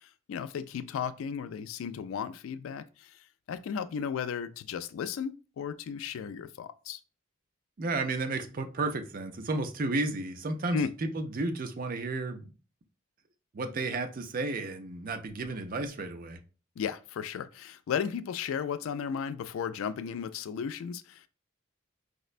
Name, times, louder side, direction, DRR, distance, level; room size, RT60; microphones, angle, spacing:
voice 1, 0.0-7.0 10.7-10.9 16.8-21.3, left 7 dB, 75° left, 0.3 m, -35 dB
voice 2, 7.8-12.5 13.5-16.4, right 2 dB, 45° right, 0.5 m, -32 dB
4.8 x 2.1 x 2.4 m
head